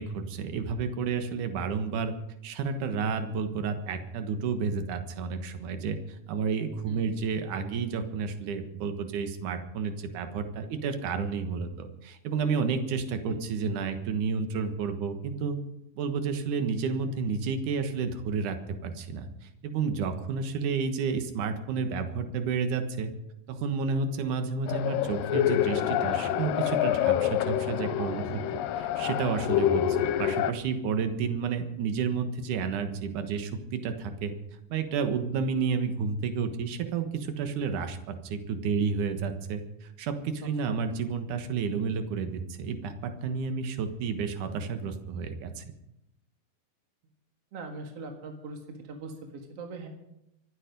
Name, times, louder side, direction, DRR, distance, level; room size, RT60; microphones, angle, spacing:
voice 1, 0.0-2.1 2.4-6.0 6.3-15.6 15.9-18.6 18.8-23.1 23.5-34.3 34.7-45.6, right 5 dB, 65° right, 7 dB, 2.8 m, -31 dB
sound 1, 24.7-30.5, left 11 dB, 85° left, 2.4 m, -27 dB
voice 2, 40.4-40.8 47.5-49.9, right 3 dB, 50° right, 3 dB, 2.5 m, -41 dB
25.5 x 9.3 x 5.3 m, 0.84 s
omnidirectional pair, 4.0 m